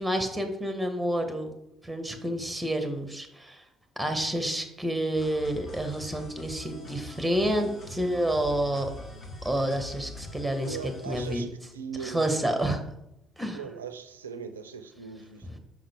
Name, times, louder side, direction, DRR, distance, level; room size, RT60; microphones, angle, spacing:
voice 1, 0.0-1.5 1.8-3.7 4.0-8.9 9.4-10.8 11.1-11.5 12.0-12.8 13.4-13.6 15.4-15.6, right 1 dB, 5° right, 6 dB, 0.9 m, -29 dB
sound 1, 5.2-11.4, left 1 dB, 45° left, 1.4 m, -43 dB
voice 2, 10.6-12.6 13.5-15.5, right 6 dB, 80° right, 10 dB, 0.4 m, -40 dB
5.7 x 5.1 x 3.4 m, 0.82 s
figure-of-eight pair, 50°, 0 cm